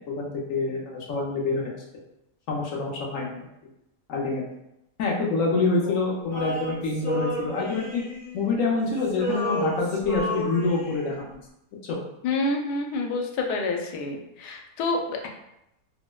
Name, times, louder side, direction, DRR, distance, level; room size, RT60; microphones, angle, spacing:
voice 1, 0.1-1.8 2.5-3.5 4.1-4.4 5.0-8.0 8.3-11.4 11.9-12.0, left 3 dB, 65° left, -2 dB, 0.9 m, -26 dB
Male singing, 6.3-8.8 9.0-11.2, equal, 40° left, 0.5 m, -32 dB
voice 2, 12.2-15.3, left 3 dB, 90° left, 1 dB, 1.1 m, -28 dB
4.3 x 2.0 x 2.2 m, 0.84 s
omnidirectional pair, 1.7 m